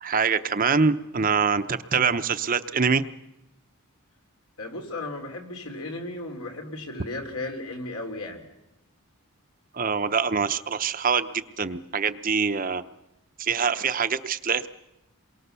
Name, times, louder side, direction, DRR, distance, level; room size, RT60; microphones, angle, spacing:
voice 1, 0.0-3.0 9.7-12.8 13.4-14.7, right 5 dB, 40° right, 10 dB, 0.8 m, -24 dB
voice 2, 4.6-8.4, left 2 dB, 80° left, 3 dB, 3.9 m, -35 dB
28.0 x 23.0 x 6.9 m, 0.92 s
head